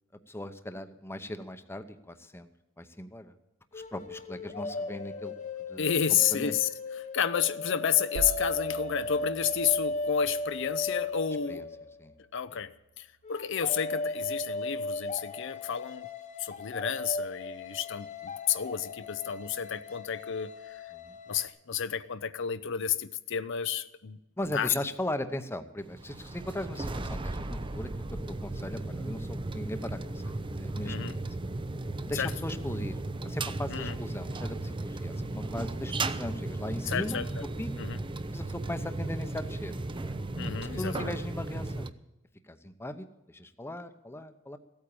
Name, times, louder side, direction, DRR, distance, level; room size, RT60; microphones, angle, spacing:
voice 1, 0.3-2.5 2.8-3.3 3.7-5.3 5.7-5.9 6.3-6.5 11.5-11.6 12.0-12.1 20.9-21.2 24.4-31.2 32.1-33.0 33.2-37.7 38.3-39.7 40.0-40.2 40.7-41.9 42.5-44.6, left 1 dB, 10° left, 9 dB, 0.8 m, -38 dB
sound 1, 3.7-12.1 13.2-21.5, left 2 dB, 35° left, 1.1 m, -37 dB
voice 2, 5.8-6.7 7.1-11.7 12.3-12.7 13.0-16.1 16.4-18.1 18.5-20.8 21.3-24.2 24.5-24.7 30.8-31.1 32.2-32.3 33.7-33.9 36.9-37.4 37.8-38.0 40.4-41.1, left 8 dB, 65° left, 12 dB, 0.6 m, -31 dB
sound 2, 8.2-11.9, right 5 dB, 85° right, 0.4 m, -43 dB
sound 3, 25.8-41.9, right 2 dB, 25° right, 0.6 m, -35 dB
16.0 x 8.8 x 8.5 m, 0.94 s
head